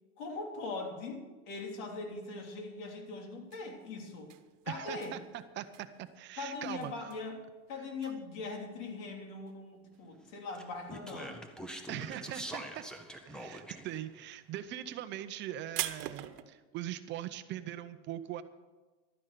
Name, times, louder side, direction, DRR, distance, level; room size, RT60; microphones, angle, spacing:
voice 1, 0.2-4.3 4.6-5.2 6.4-7.4 7.7-11.4, left 3 dB, 65° left, 2 dB, 3.3 m, -41 dB
sound 1, 3.3-11.3 11.6-12.2 12.5-16.4, right 14 dB, 80° right, 1.1 m, -44 dB
voice 2, 4.7-6.9 11.9-12.8 13.3-18.4, right 12 dB, 30° right, 11 dB, 0.7 m, -41 dB
Speech, 10.5-14.0, right 1 dB, ahead, 0.8 m, -44 dB
12.5 x 9.6 x 6.8 m, 1.3 s
supercardioid pair, 155°, 37 cm